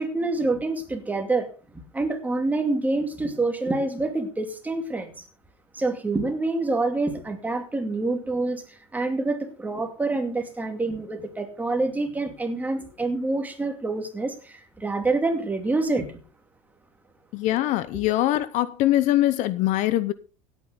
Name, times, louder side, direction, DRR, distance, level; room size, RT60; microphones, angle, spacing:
voice 1, 0.0-1.5 1.9-5.2 5.7-16.0, right 2 dB, 10° right, 2.5 m, -27 dB
voice 2, 17.3-20.1, left 14 dB, 50° left, 0.8 m, -22 dB
17.0 x 9.2 x 3.8 m
supercardioid pair, 120°, 15 cm